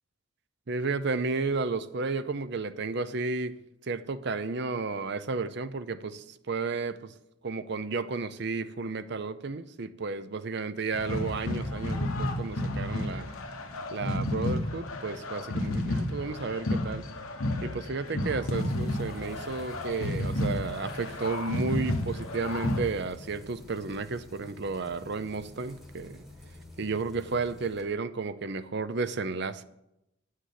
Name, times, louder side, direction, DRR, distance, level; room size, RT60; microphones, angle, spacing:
voice 1, 0.7-3.6 3.8-7.1 7.4-13.3 13.9-17.1 17.6-26.2 26.8-29.6, right 4 dB, 50° right, 12 dB, 0.6 m, -32 dB
sound 1, 10.9-22.8, left 1 dB, 85° left, 1.2 m, -32 dB
sound 2, 18.5-27.8, left 1 dB, ahead, 1.4 m, -49 dB
8.3 x 6.4 x 7.5 m, 0.84 s
head